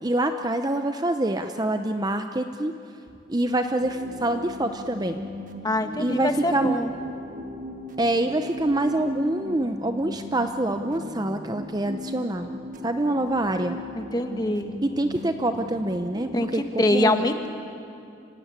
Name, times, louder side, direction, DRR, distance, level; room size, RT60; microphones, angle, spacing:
voice 1, 0.0-2.8 3.3-5.2 6.0-6.8 8.0-12.5 12.8-13.8 14.8-17.2, right 1 dB, 20° right, 7 dB, 0.6 m, -26 dB
sound 1, 3.8-16.5, left 1 dB, 40° right, 1.6 m, -38 dB
voice 2, 5.6-6.9 13.9-14.7 16.3-16.5 16.8-17.5, left 1 dB, 20° left, 6 dB, 1.2 m, -24 dB
25.5 x 16.0 x 9.7 m, 2.5 s
head